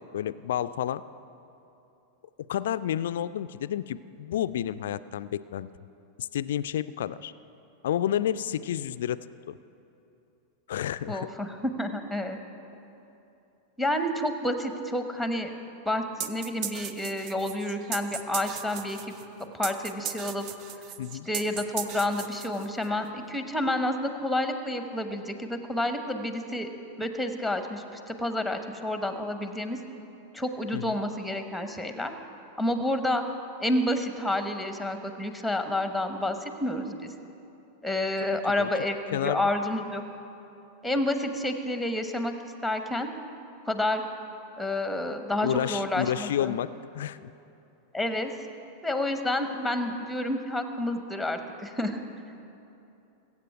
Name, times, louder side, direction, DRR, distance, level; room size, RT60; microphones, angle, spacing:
voice 1, 0.1-1.0 2.5-5.7 6.2-7.3 7.8-9.2 9.5-9.6 10.7-11.3 21.0-21.3 30.7-31.0 38.2-38.7 39.1-39.4 45.4-46.7 46.9-47.3, left 10 dB, 60° left, 15 dB, 0.3 m, -30 dB
voice 2, 11.1-12.4 13.8-15.5 15.8-19.2 19.5-20.4 21.3-26.7 27.0-29.8 30.3-32.1 32.6-33.2 33.6-37.1 37.8-40.0 40.8-42.3 42.6-43.1 43.7-44.0 44.6-46.5 47.9-48.3 48.8-52.0, left 1 dB, ahead, 7 dB, 1.0 m, -29 dB
sound 1, 16.2-22.9, right 9 dB, 40° right, 0.6 m, -37 dB
22.0 x 8.3 x 4.8 m, 2.8 s
figure-of-eight pair, 90°, 0 cm